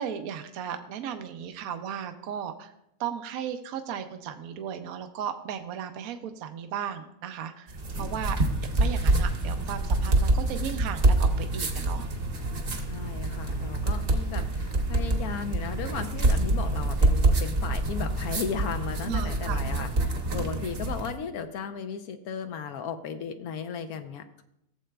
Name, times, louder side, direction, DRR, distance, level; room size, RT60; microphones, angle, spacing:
voice 1, 0.0-2.7 3.0-8.4 8.8-12.1 19.1-19.6, right 8 dB, 75° right, 7 dB, 1.0 m, -35 dB
sound 1, 7.7-21.1, right 2 dB, 45° right, 1.0 m, -26 dB
voice 2, 12.9-24.4, left 6 dB, 80° left, 7 dB, 1.1 m, -36 dB
16.0 x 7.4 x 2.2 m, 0.81 s
omnidirectional pair, 1.6 m